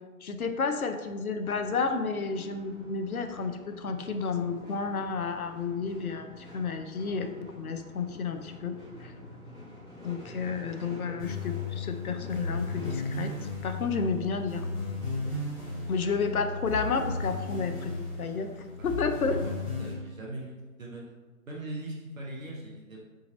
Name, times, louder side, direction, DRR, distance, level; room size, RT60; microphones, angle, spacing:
voice 1, 0.2-7.3 7.6-8.7 9.0-9.1 10.0-13.3 13.6-14.6 15.9-17.9 18.2-18.5 18.8-19.4, left 5 dB, 75° left, 7 dB, 0.6 m, -31 dB
sound 1, 1.4-18.7, left 1 dB, ahead, 1.2 m, -48 dB
sound 2, 11.2-19.9, left 3 dB, 25° left, 1.1 m, -35 dB
voice 2, 19.0-19.4 19.8-21.1 21.5-23.0, right 1 dB, 65° right, -3 dB, 0.9 m, -40 dB
4.0 x 3.8 x 2.5 m, 1.3 s
figure-of-eight pair, 145°, 43 cm